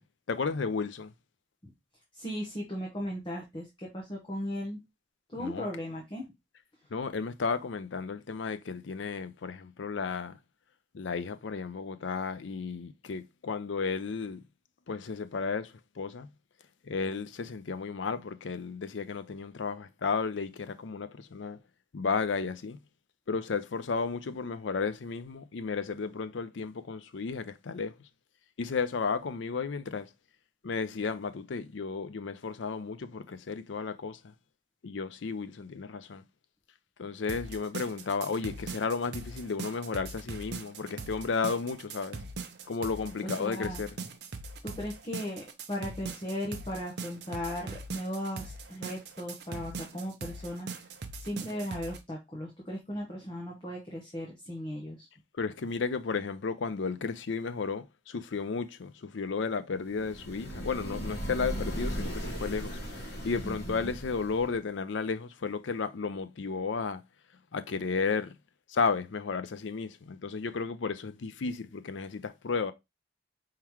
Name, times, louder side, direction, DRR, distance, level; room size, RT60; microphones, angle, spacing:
voice 1, 0.3-1.1 5.4-5.7 6.9-10.4 10.9-14.4 14.9-16.3 16.8-21.6 21.9-22.8 23.3-27.9 28.6-30.1 30.6-34.2 34.8-36.2 37.0-42.2 42.7-44.0 55.4-67.0 67.5-68.3 68.7-72.7, left 5 dB, 80° left, 0.5 m, -33 dB
voice 2, 2.1-4.8 5.3-6.3 43.2-43.8 44.6-50.7 51.2-55.1 63.4-63.9, equal, 25° left, 1.0 m, -37 dB
sound 1, 37.3-52.0, right 3 dB, 60° right, 0.6 m, -41 dB
sound 2, 59.9-64.6, equal, 55° left, 1.9 m, -37 dB
4.7 x 3.7 x 2.9 m
head